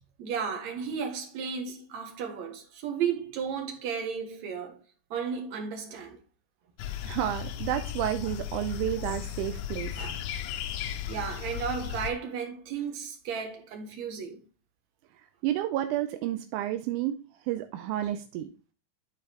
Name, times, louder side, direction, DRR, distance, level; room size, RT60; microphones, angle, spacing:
voice 1, 0.2-4.8 5.1-6.2 10.0-10.2 11.1-14.4, right 6 dB, 60° right, 2.5 m, -34 dB
sound 1, 6.8-12.1, left 10 dB, 80° left, 1.8 m, -35 dB
voice 2, 7.0-9.9 15.4-17.2 17.5-18.5, right 13 dB, 80° right, 1.8 m, -30 dB
12.0 x 4.1 x 3.3 m
omnidirectional pair, 4.1 m